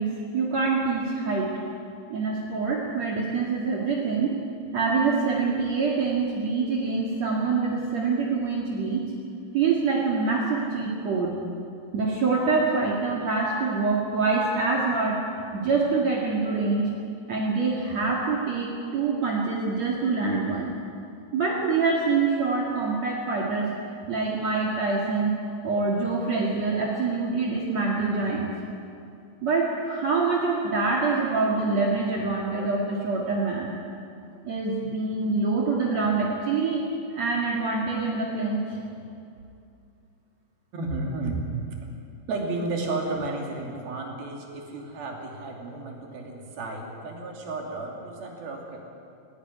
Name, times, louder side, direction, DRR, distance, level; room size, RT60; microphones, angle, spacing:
voice 1, 0.0-1.6 2.1-4.3 4.7-9.1 9.5-11.4 11.9-15.2 15.5-16.9 17.3-20.7 21.3-23.7 24.1-25.4 25.6-28.5 29.4-33.7 34.4-36.8 37.1-38.8, right 4 dB, 50° right, -3 dB, 3.0 m, -25 dB
voice 2, 40.7-41.4 42.3-48.8, right 2 dB, 85° right, 0 dB, 4.6 m, -32 dB
18.5 x 17.0 x 9.5 m, 2.5 s
omnidirectional pair, 4.2 m